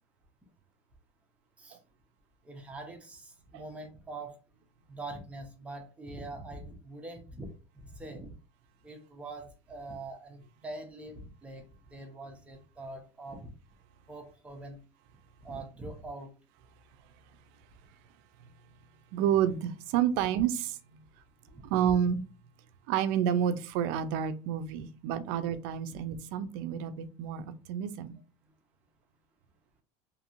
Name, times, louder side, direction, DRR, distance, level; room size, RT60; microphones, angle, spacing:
voice 1, 2.4-4.3 4.9-7.5 7.7-8.3 8.8-11.6 11.9-13.5 14.1-14.8 15.4-16.3 25.9-26.0, right 2 dB, 10° right, 0.6 m, -43 dB
voice 2, 19.1-20.8 21.7-22.2 22.9-28.2, right 9 dB, 60° right, 0.4 m, -29 dB
2.9 x 2.7 x 2.5 m
supercardioid pair, 150°, 15 cm